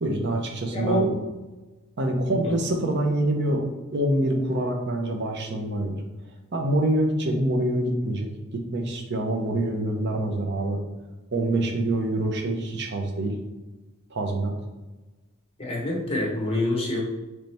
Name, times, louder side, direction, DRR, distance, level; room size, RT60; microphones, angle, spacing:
voice 1, 0.0-1.1 2.0-3.6 3.9-6.0 6.5-10.8 11.3-13.3 14.1-14.5, right 1 dB, 50° right, 3 dB, 0.6 m, -25 dB
voice 2, 0.7-1.2 2.4-2.5 15.6-17.0, left 1 dB, 25° left, -2 dB, 1.0 m, -26 dB
4.0 x 3.2 x 3.3 m, 1.2 s
head